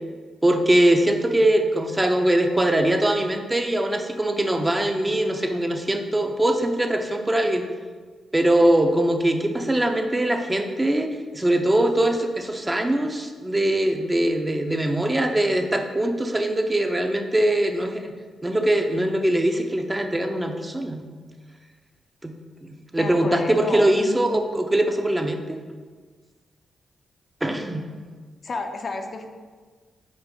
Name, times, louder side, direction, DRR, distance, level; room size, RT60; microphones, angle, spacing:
voice 1, 0.4-7.7 8.3-18.1 18.4-21.1 22.2-22.3 22.7-25.6 27.4-27.9, right 1 dB, 20° right, 5 dB, 0.5 m, -22 dB
voice 2, 23.0-24.2 28.4-29.3, left 3 dB, 55° left, 4 dB, 0.5 m, -31 dB
5.2 x 2.6 x 3.7 m, 1.5 s
supercardioid pair, 45°, 0 cm